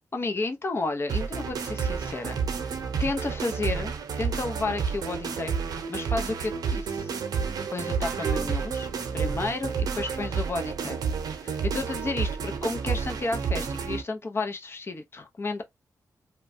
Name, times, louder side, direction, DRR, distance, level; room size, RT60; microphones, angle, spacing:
voice 1, 0.1-5.5 5.9-7.1 7.4-8.9 9.1-11.0 11.4-15.6, left 3 dB, 40° left, 0.7 m, -32 dB
sound 1, 1.1-14.0, right 6 dB, 85° right, 0.7 m, -30 dB
3.0 x 2.2 x 2.6 m
cardioid pair, 80°, 6 cm